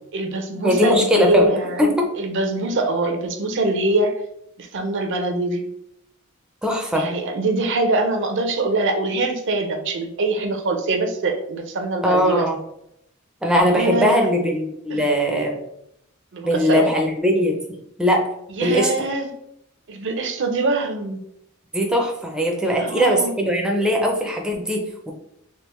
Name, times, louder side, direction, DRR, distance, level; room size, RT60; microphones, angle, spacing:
voice 1, 0.1-1.8 2.2-4.2 4.6-5.6 6.9-12.5 13.6-14.3 14.9-15.0 16.3-16.9 18.6-19.3 19.9-21.2 22.8-23.3, right 2 dB, 60° right, 6 dB, 0.5 m, -23 dB
voice 2, 0.6-2.1 6.6-7.1 12.0-12.6 13.4-15.6 16.4-17.6 18.0-18.3 18.6-18.9 21.7-25.1, equal, 5° right, 1 dB, 0.4 m, -20 dB
3.5 x 2.8 x 3.0 m, 0.77 s
head